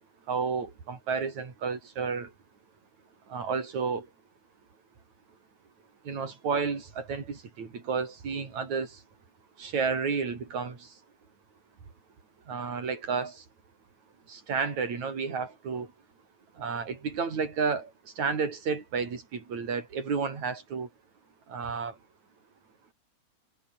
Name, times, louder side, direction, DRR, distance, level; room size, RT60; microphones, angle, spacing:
voice 1, 0.3-2.3 3.3-4.1 6.0-9.0 9.6-11.0 12.5-13.5 14.3-15.9 16.5-20.9 21.5-22.0, right 5 dB, 65° right, 5.6 m, -31 dB
omnidirectional pair, 3.5 m